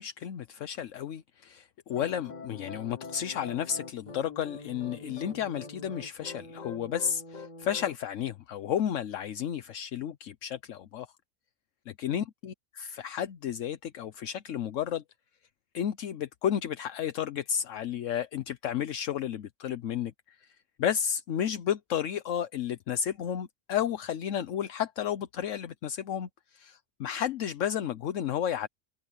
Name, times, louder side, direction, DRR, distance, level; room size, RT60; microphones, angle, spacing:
voice 1, 0.0-11.1 11.9-15.0 15.7-20.5 20.8-28.7, left 9 dB, 75° left, 1.1 m, -32 dB
sound 1, 1.9-8.0, left 4 dB, 35° left, 1.4 m, -44 dB
omnidirectional pair, 1.3 m